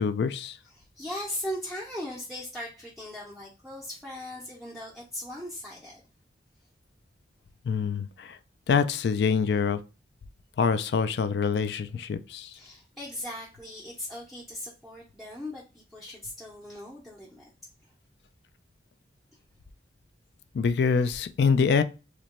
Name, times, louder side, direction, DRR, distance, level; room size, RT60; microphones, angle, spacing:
voice 1, 0.0-0.6 7.7-8.4 8.7-9.8 10.6-12.5 20.5-21.8, left 5 dB, 70° left, 0.3 m, -25 dB
voice 2, 0.7-6.0 12.5-17.5, left 1 dB, ahead, 0.6 m, -39 dB
2.9 x 2.2 x 4.1 m
head